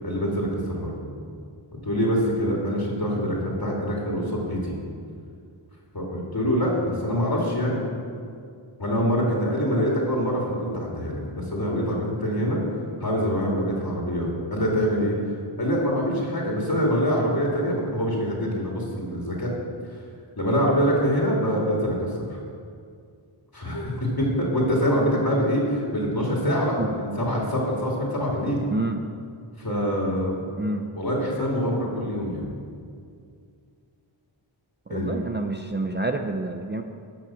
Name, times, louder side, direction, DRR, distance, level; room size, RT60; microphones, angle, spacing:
voice 1, 0.0-1.0 1.8-4.8 5.9-7.8 8.8-12.6 13.0-15.2 15.6-19.5 20.4-22.4 23.5-28.7 29.6-30.5 31.0-32.5 34.9-35.2, equal, 50° left, -3 dB, 2.5 m, -25 dB
voice 2, 34.9-36.8, right 2 dB, 25° right, 4 dB, 0.5 m, -28 dB
14.5 x 5.9 x 6.2 m, 2.3 s
wide cardioid pair, 80°, 49 cm